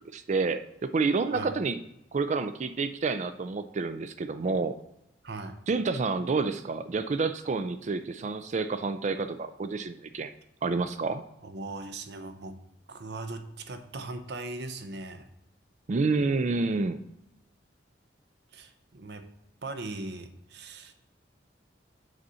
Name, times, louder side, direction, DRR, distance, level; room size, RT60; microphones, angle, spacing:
voice 1, 0.1-1.8 2.1-4.7 5.7-10.3 10.6-11.2 15.9-17.0, right 4 dB, 40° right, 11 dB, 0.4 m, -29 dB
voice 2, 5.2-5.6 11.4-12.6 12.9-15.3 18.5-19.3 19.6-20.9, right 2 dB, 65° right, 8 dB, 0.8 m, -39 dB
8.0 x 4.1 x 5.6 m, 0.81 s
head